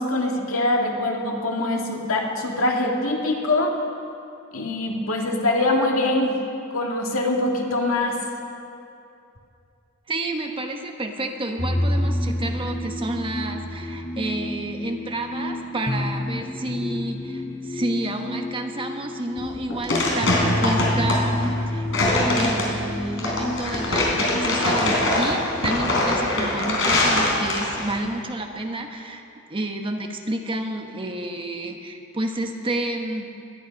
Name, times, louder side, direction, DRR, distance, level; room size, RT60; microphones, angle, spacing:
voice 1, 0.0-3.8 4.5-6.4 6.7-8.2, left 2 dB, 85° left, 0 dB, 2.1 m, -23 dB
voice 2, 10.1-21.9 22.3-29.2 29.5-33.4, right 1 dB, 25° right, 4 dB, 1.0 m, -30 dB
sound 1, 11.6-27.2, left 1 dB, 15° left, 0.6 m, -29 dB
sound 2, 19.4-28.0, left 2 dB, 65° left, 3.7 m, -23 dB
19.0 x 11.0 x 5.3 m, 2.7 s
head